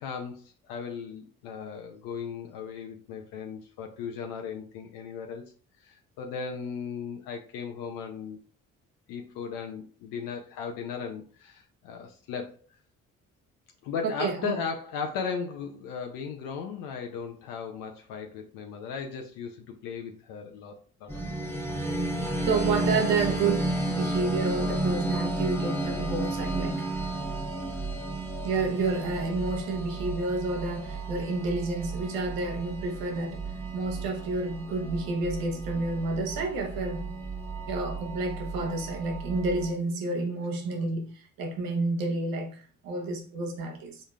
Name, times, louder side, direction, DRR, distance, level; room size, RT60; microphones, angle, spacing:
voice 1, 0.0-5.5 5.8-8.4 9.1-12.6 13.8-21.5 31.2-31.3, left 6 dB, 80° left, 0.7 m, -37 dB
voice 2, 14.0-14.6 22.5-27.1 28.4-37.1 37.7-44.0, right 3 dB, 80° right, 1.1 m, -30 dB
sound 1, 21.1-39.7, right 2 dB, 5° left, 0.9 m, -32 dB
5.1 x 3.7 x 2.4 m
hypercardioid pair, 55°, 34 cm